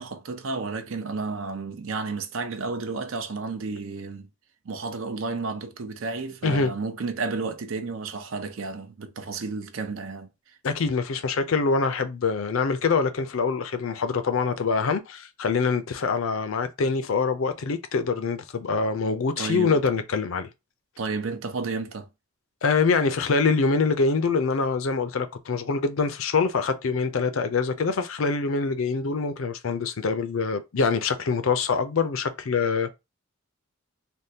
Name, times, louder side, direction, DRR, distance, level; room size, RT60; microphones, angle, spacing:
voice 1, 0.0-4.3 4.6-10.3 19.4-19.8 21.0-22.1, right 4 dB, 65° right, 0.6 m, -32 dB
voice 2, 10.6-20.5 22.6-32.9, left 4 dB, 70° left, 0.5 m, -24 dB
3.5 x 2.2 x 2.7 m
head